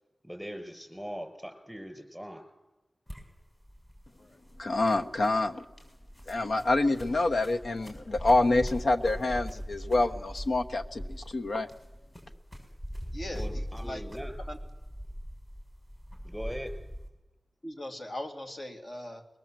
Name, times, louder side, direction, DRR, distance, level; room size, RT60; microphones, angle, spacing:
voice 1, 0.2-2.4 13.3-14.3 16.2-16.7, equal, ahead, 4 dB, 5.0 m, -40 dB
sound 1, 3.1-17.1, equal, 25° left, 6.6 m, -41 dB
voice 2, 4.6-5.6 6.3-11.7, left 2 dB, 75° left, 6 dB, 1.1 m, -27 dB
voice 3, 13.1-14.0 14.4-14.6 17.6-19.3, left 1 dB, 45° left, 3 dB, 2.7 m, -40 dB
22.5 x 20.0 x 7.6 m, 1.1 s
wide cardioid pair, 75°, 0 cm